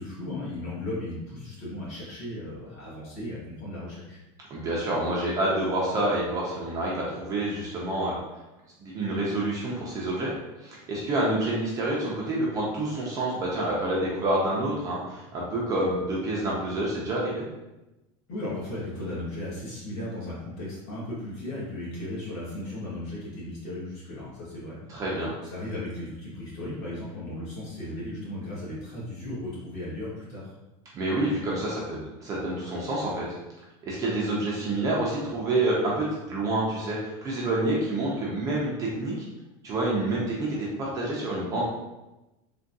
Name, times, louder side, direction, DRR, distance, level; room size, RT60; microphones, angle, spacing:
voice 1, 0.0-4.2 18.3-24.8 25.4-30.5, left 1 dB, 45° left, -7 dB, 1.4 m, -36 dB
voice 2, 4.5-8.2 8.8-10.3 10.6-17.4 24.9-25.3 30.9-33.4 33.8-39.1 39.6-41.6, right 1 dB, 20° right, -4 dB, 0.4 m, -28 dB
3.5 x 2.2 x 2.6 m, 1.0 s
supercardioid pair, 175°, 15 cm